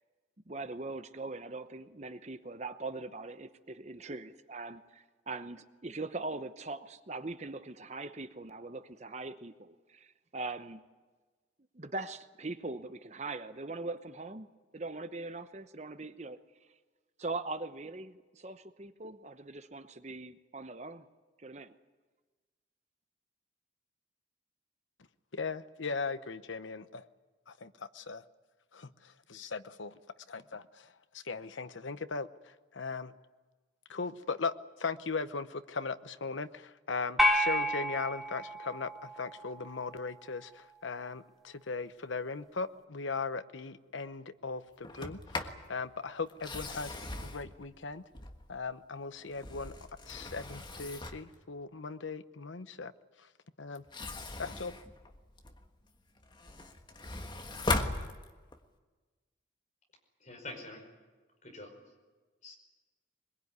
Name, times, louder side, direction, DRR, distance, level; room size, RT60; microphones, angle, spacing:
voice 1, 0.5-10.8 11.7-14.5 14.7-16.4 17.2-21.1 21.4-21.7, right 3 dB, 35° right, 10 dB, 0.9 m, -41 dB
voice 2, 25.3-27.1 27.5-28.2 28.7-30.0 30.3-33.1 33.9-48.0 48.5-49.8 50.1-52.9 53.2-53.3 53.6-53.8 54.4-54.8, left 4 dB, 80° left, 12 dB, 0.9 m, -38 dB
sound 1, 37.2-39.7, left 1 dB, ahead, 1.5 m, -30 dB
Sliding door, 44.8-45.6 46.3-48.6 49.2-51.3 53.7-55.7 56.2-58.7, left 2 dB, 25° left, 1.4 m, -38 dB
voice 3, 60.2-60.9 61.4-61.8 62.4-62.5, left 2 dB, 40° left, 2 dB, 5.3 m, -46 dB
22.0 x 22.0 x 9.6 m, 1.3 s
head